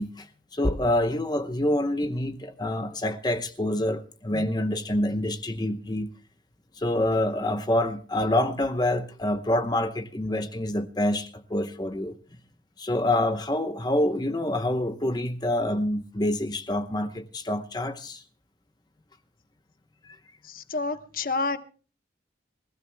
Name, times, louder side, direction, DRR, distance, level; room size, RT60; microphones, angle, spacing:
voice 1, 0.0-6.1 6.8-12.1 12.8-18.2 20.0-20.2, left 1 dB, 20° left, 0.8 m, -27 dB
voice 2, 20.4-21.6, left 3 dB, 50° left, 1.1 m, -29 dB
26.5 x 16.0 x 2.2 m
head